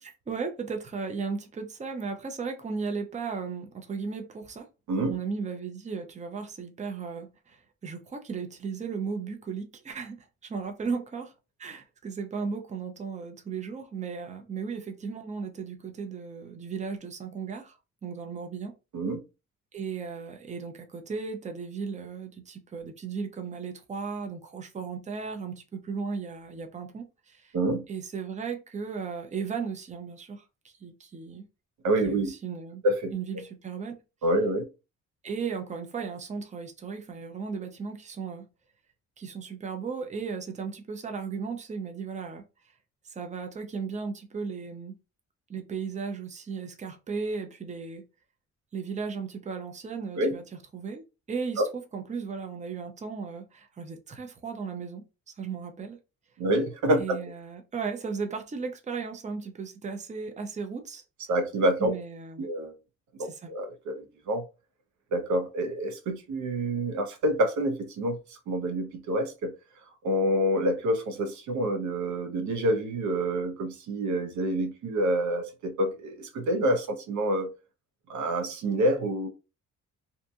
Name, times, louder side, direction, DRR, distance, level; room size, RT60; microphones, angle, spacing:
voice 1, 0.0-4.7 5.0-11.3 11.6-17.8 18.0-18.7 19.7-27.5 27.9-31.4 32.0-32.8 33.1-34.0 35.2-38.4 39.2-42.4 43.0-45.0 45.5-48.0 48.7-50.4 50.7-51.0 51.3-55.0 55.4-56.0 57.0-61.0 61.8-62.5 63.2-63.5, right 5 dB, 25° right, 0.6 m, -36 dB
voice 2, 27.5-27.8 31.8-32.3 32.8-33.1 34.2-34.7 50.2-50.3 51.6-51.7 56.4-57.2 61.3-61.9 62.4-62.7 63.2-64.4 65.1-69.5 70.0-77.5 78.1-79.3, right 1 dB, 70° right, 0.7 m, -27 dB
2.7 x 2.5 x 2.3 m
cardioid pair, 90°, 30 cm